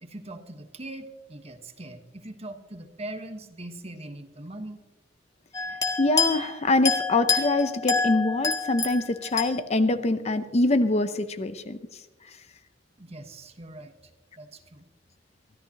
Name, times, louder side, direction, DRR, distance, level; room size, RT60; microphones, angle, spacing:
voice 1, 0.0-4.8 13.0-13.9 14.4-14.9, right 1 dB, 35° right, 6 dB, 1.2 m, -41 dB
sound 1, 5.5-6.5 6.8-9.5, left 4 dB, 20° left, 1.8 m, -27 dB
voice 2, 6.0-11.8, left 2 dB, 35° left, 11 dB, 0.6 m, -24 dB
24.0 x 14.0 x 2.9 m, 1.1 s
head